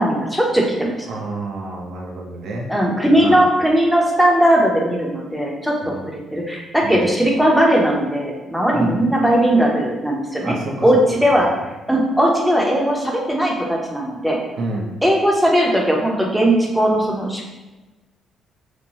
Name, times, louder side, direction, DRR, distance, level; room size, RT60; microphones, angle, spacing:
voice 1, 0.0-1.0 2.7-10.5 10.8-11.5 11.9-14.4 15.0-17.5, right 1 dB, ahead, -2 dB, 0.6 m, -18 dB
voice 2, 1.1-2.7 3.2-3.4 5.9-6.0 6.8-7.0 8.7-8.9 10.4-10.7 14.6-14.9, right 2 dB, 80° right, 0 dB, 0.5 m, -28 dB
3.0 x 2.1 x 2.8 m, 1.1 s
cardioid pair, 90°, 0 cm